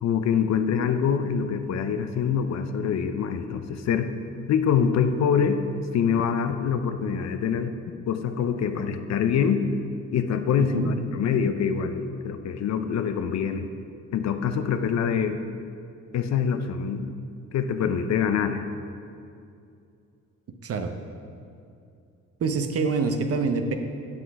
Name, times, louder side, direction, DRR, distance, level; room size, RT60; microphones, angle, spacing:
voice 1, 0.0-4.1 4.5-5.6 5.9-7.7 8.1-9.7 10.1-13.7 14.1-15.4 16.1-17.1 17.5-18.7, left 7 dB, 60° left, 8 dB, 0.6 m, -25 dB
voice 2, 10.6-10.9 20.6-21.0 22.4-23.7, right 4 dB, 50° right, 7 dB, 0.7 m, -26 dB
7.8 x 6.0 x 4.7 m, 2.5 s
cardioid pair, 90°, 30 cm